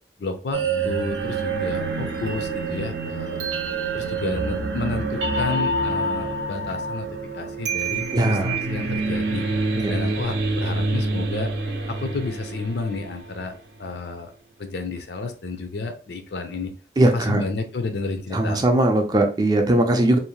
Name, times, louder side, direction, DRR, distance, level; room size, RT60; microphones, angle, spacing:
voice 1, 0.2-3.5 3.9-7.1 7.3-9.4 9.9-11.5 11.9-13.5 13.8-14.3 14.6-16.7 17.1-18.8, left 3 dB, 70° left, 7 dB, 0.4 m, -31 dB
sound 1, 0.5-13.5, right 3 dB, 85° right, 0.6 m, -27 dB
voice 2, 8.1-8.6 9.8-9.9 17.0-17.4 18.3-20.2, right 1 dB, 20° right, 4 dB, 0.4 m, -19 dB
2.6 x 2.1 x 2.9 m, 0.38 s
head